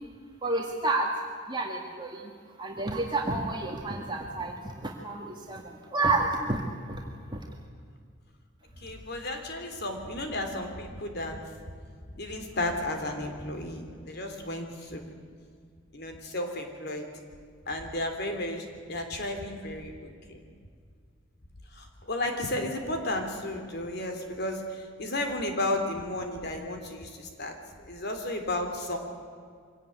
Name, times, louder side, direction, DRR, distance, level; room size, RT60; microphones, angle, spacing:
voice 1, 0.4-1.1 1.5-2.3 2.6-6.6 6.9-7.0 7.3-7.4, right 2 dB, 25° right, 0 dB, 1.9 m, -30 dB
voice 2, 8.8-11.4 12.2-15.1 15.9-17.1 17.7-20.4 21.7-27.5 27.8-29.0, left 1 dB, 55° left, 5 dB, 3.4 m, -33 dB
24.0 x 18.0 x 9.4 m, 2.1 s
head